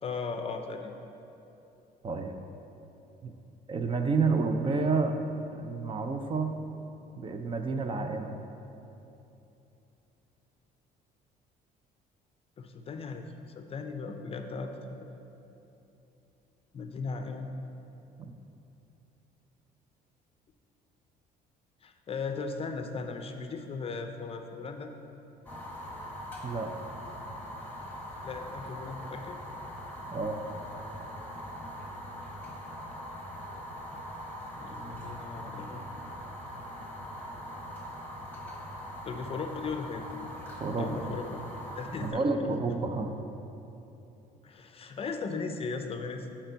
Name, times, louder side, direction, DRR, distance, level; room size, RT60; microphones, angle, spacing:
voice 1, 0.0-0.9 12.6-15.1 16.7-17.5 21.8-24.9 28.2-29.4 34.5-35.8 39.0-40.1 40.8-41.4 41.7-42.5 44.4-46.3, left 4 dB, 35° left, 6 dB, 0.5 m, -37 dB
voice 2, 3.7-5.2 5.5-6.6 7.2-8.3 26.4-26.7 30.1-30.4 40.6-41.1 42.0-43.1, right 4 dB, 30° right, 5 dB, 0.5 m, -29 dB
Fire, 25.5-42.1, equal, 10° left, 1.1 m, -42 dB
8.7 x 4.4 x 4.0 m, 2.9 s
cardioid pair, 110°, 17 cm